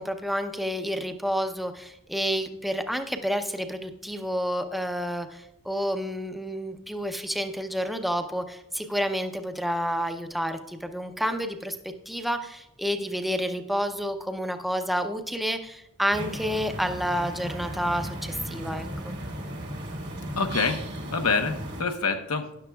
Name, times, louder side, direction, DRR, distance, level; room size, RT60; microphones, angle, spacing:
voice 1, 0.0-11.8 12.1-19.1, equal, ahead, 6 dB, 0.6 m, -29 dB
sound 1, 16.1-21.8, right 1 dB, 50° right, 1.3 m, -35 dB
voice 2, 20.3-20.8 21.1-22.7, left 4 dB, 85° left, 6 dB, 0.9 m, -26 dB
13.0 x 9.9 x 2.3 m, 0.81 s
head